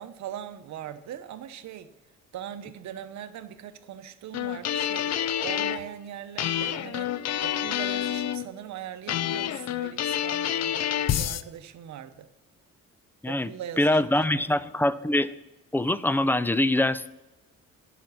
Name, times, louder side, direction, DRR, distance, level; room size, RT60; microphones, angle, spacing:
voice 1, 0.0-1.9 2.3-7.1 7.4-12.3 13.3-14.5, right 10 dB, 65° right, 0.8 m, -40 dB
sound 1, 4.3-5.8 6.4-8.5 9.1-11.4, left 10 dB, 60° left, 0.6 m, -28 dB
voice 2, 13.8-15.3 15.7-17.1, left 1 dB, 5° left, 0.4 m, -24 dB
10.5 x 5.9 x 6.1 m
cardioid pair, 90°, 30 cm